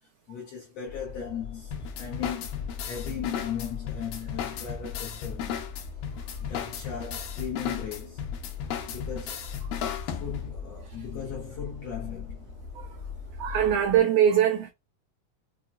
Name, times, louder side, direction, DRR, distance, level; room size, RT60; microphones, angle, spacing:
voice 1, 0.3-5.7 6.4-8.2 8.9-9.5 10.0-12.5, left 8 dB, 70° left, 1.6 m, -37 dB
sound 1, 0.9-14.0, left 6 dB, 40° left, 1.3 m, -40 dB
sound 2, 1.7-10.6, left 8 dB, 90° left, 2.5 m, -36 dB
voice 2, 13.4-14.7, right 9 dB, 85° right, 1.7 m, -22 dB
5.8 x 2.2 x 2.4 m
omnidirectional pair, 4.0 m